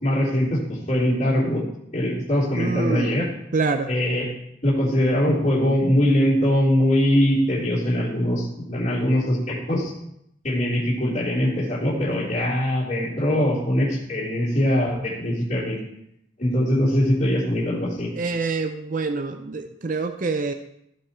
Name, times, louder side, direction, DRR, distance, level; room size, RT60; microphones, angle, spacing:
voice 1, 0.0-1.6 1.9-3.3 3.9-4.3 4.6-9.9 10.4-15.8 16.4-18.1, equal, 40° left, -8 dB, 3.5 m, -22 dB
voice 2, 2.5-3.2 3.5-3.9 18.1-20.5, right 4 dB, 45° right, 7 dB, 0.5 m, -26 dB
15.5 x 5.4 x 4.5 m, 0.77 s
head